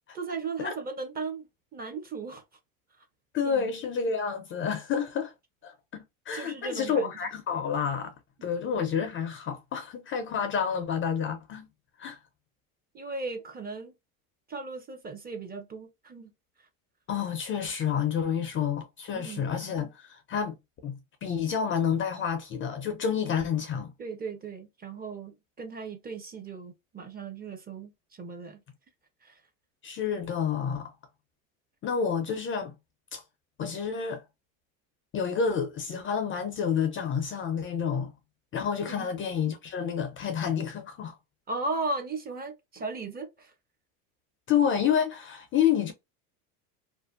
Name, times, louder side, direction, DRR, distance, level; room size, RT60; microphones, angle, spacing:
voice 1, 0.1-1.5 1.7-2.4 3.4-3.7 6.3-7.1 12.9-13.9 14.5-16.3 19.1-19.5 24.0-27.9 28.2-28.6 29.2-29.4 38.8-39.1 41.5-43.5, right 3 dB, 20° right, 0.6 m, -36 dB
voice 2, 3.3-5.3 5.6-8.1 8.4-11.7 12.0-12.2 17.1-20.6 20.8-23.9 29.8-30.9 31.8-32.7 33.1-33.2 33.6-34.2 35.1-38.1 38.5-41.1 44.5-45.9, left 7 dB, 30° left, 0.4 m, -29 dB
2.5 x 2.1 x 2.3 m
supercardioid pair, 100°, 42 cm